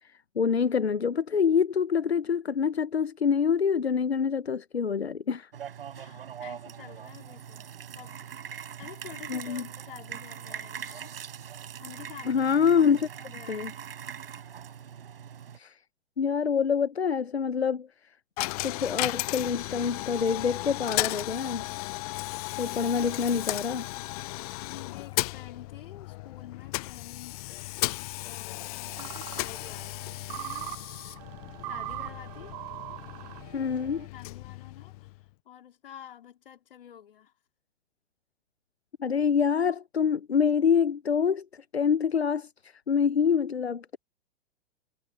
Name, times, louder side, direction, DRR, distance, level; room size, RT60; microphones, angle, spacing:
voice 1, 0.0-5.5 9.3-9.7 12.3-13.1 13.5-13.7 15.5-15.8 16.2-18.1 18.6-21.6 22.6-23.9 33.5-34.1 39.0-44.0, left 6 dB, 75° left, 0.9 m, -26 dB
sound 1, 5.5-15.6, right 8 dB, 60° right, 7.8 m, -42 dB
voice 2, 5.9-7.7 7.9-8.2 8.5-11.2 11.6-12.4 12.9-13.0 13.2-13.8 24.6-27.7 28.1-30.8 31.6-32.6 34.1-37.3, left 10 dB, 60° left, 4.2 m, -49 dB
Coin (dropping), 18.4-35.3, left 21 dB, 35° left, 0.9 m, -35 dB
sound 2, 28.8-34.1, right 20 dB, 40° right, 1.4 m, -41 dB
figure-of-eight pair, 105°, 32 cm